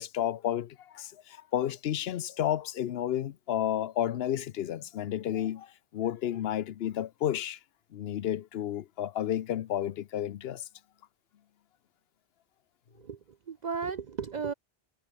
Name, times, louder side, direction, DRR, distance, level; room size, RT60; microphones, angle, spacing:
voice 1, 0.0-7.6 7.9-10.6, left 11 dB, 75° left, 0.9 m, -31 dB
voice 2, 13.0-14.5, right 6 dB, 50° right, 0.7 m, -35 dB
omnidirectional pair, 1.1 m